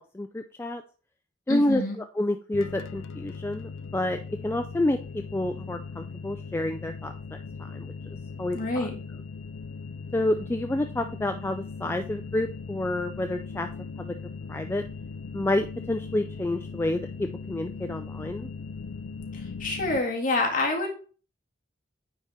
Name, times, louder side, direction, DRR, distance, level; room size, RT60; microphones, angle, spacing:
voice 1, 0.1-0.8 1.5-1.8 2.2-7.1 7.6-7.9 8.4-8.9 10.1-13.7 14.0-14.1 14.5-14.8 15.3-18.5, left 1 dB, 10° left, 6 dB, 0.3 m, -29 dB
voice 2, 1.5-2.0 8.5-8.9 19.3-20.9, left 2 dB, 45° left, 1 dB, 1.8 m, -27 dB
sound 1, 2.5-20.0, left 4 dB, 80° left, 0.4 m, -39 dB
9.2 x 4.0 x 3.7 m, 0.39 s
head